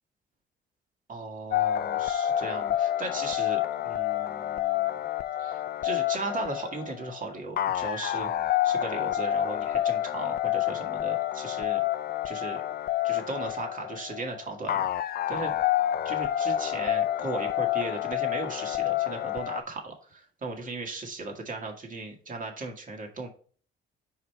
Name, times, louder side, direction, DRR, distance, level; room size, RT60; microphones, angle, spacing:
voice 1, 1.1-5.0 5.4-8.3 8.6-11.8 12.2-12.6 13.0-15.5 16.0-23.3, right 3 dB, 40° right, 2 dB, 2.0 m, -37 dB
sound 1, 1.5-19.6, left 12 dB, 50° left, 0.4 m, -28 dB
5.1 x 4.9 x 4.5 m, 0.43 s
cardioid pair, 90°, 20 cm